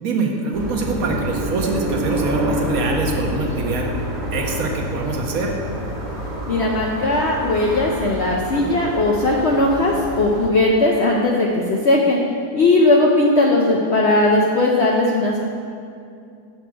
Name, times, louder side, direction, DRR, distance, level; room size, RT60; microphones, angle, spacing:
voice 1, 0.0-3.9 4.3-5.5, right 3 dB, 65° right, 1 dB, 1.1 m, -24 dB
sound 1, 0.5-10.5, equal, 30° right, 1.0 m, -28 dB
voice 2, 6.5-12.2 12.5-15.5, left 2 dB, 60° left, -2 dB, 0.7 m, -18 dB
7.0 x 4.5 x 6.0 m, 2.4 s
omnidirectional pair, 1.8 m